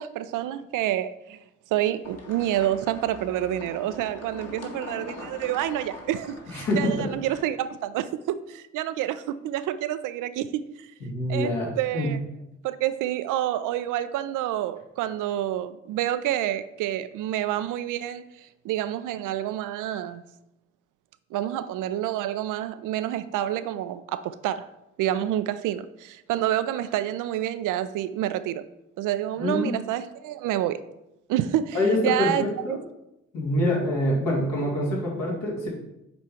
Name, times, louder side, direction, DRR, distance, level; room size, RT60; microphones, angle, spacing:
voice 1, 0.0-1.4 1.7-10.9 11.3-12.2 12.6-20.2 21.3-24.7 25.0-28.6 29.0-30.8 31.3-32.8, right 12 dB, 55° right, 0.5 m, -28 dB
sound 1, 2.0-7.5, left 2 dB, 40° left, 2.0 m, -42 dB
voice 2, 6.5-6.9 11.0-12.2 29.4-29.7 31.7-32.8 33.3-35.7, left 1 dB, 65° left, 2.7 m, -25 dB
9.4 x 3.5 x 4.3 m
figure-of-eight pair, 40°, 37 cm